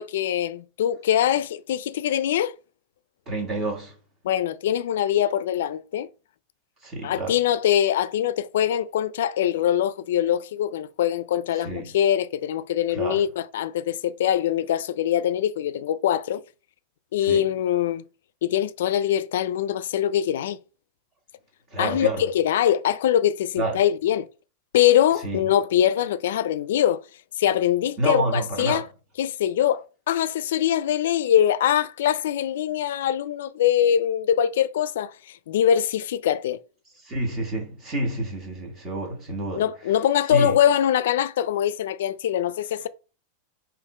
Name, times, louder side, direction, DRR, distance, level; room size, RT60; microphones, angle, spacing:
voice 1, 0.0-2.5 4.2-6.1 7.0-16.4 17.1-18.0 18.4-20.6 21.8-24.3 24.7-27.0 27.4-28.9 29.2-36.6 39.5-42.9, left 10 dB, 80° left, 0.3 m, -23 dB
voice 2, 3.3-3.9 6.8-7.4 11.5-11.9 12.9-13.2 17.2-17.5 21.7-22.3 23.6-23.8 25.2-25.5 28.0-28.9 37.0-39.7 40.3-40.6, right 2 dB, 25° right, 1.4 m, -28 dB
3.6 x 2.9 x 4.7 m
supercardioid pair, 160°, 0 cm